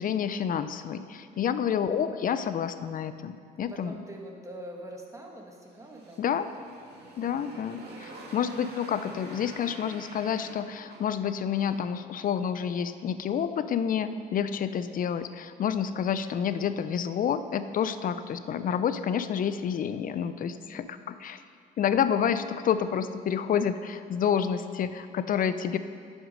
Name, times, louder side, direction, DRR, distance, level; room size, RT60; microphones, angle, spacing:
voice 1, 0.0-3.9 6.2-6.5 7.2-21.4 21.8-25.8, left 8 dB, 45° left, 12 dB, 0.5 m, -29 dB
voice 2, 3.7-6.3 7.3-7.7 8.0-8.4 17.8-17.9 20.4-21.1, right 1 dB, 15° right, 0 dB, 1.6 m, -45 dB
Motorcycle, 5.6-12.0, right 2 dB, 60° right, 1.9 m, -48 dB
10.0 x 6.1 x 5.4 m, 2.3 s
supercardioid pair, 80°, 19 cm